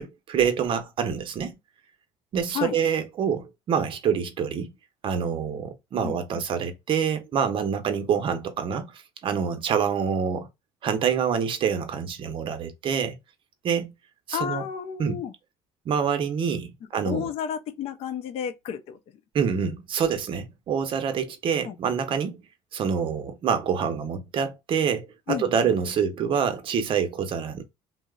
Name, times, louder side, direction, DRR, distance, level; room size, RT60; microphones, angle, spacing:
voice 1, 0.0-1.6 2.3-4.7 5.0-8.9 9.2-10.5 10.8-13.2 13.6-13.9 14.3-14.6 15.0-15.2 15.9-17.3 19.3-22.4 22.7-27.6, right 7 dB, 50° right, 0.6 m, -26 dB
voice 2, 6.0-6.4 14.3-15.3 17.0-19.0 21.6-21.8 25.3-25.7, left 8 dB, 60° left, 0.5 m, -32 dB
2.8 x 2.0 x 2.2 m
supercardioid pair, 95°, 11 cm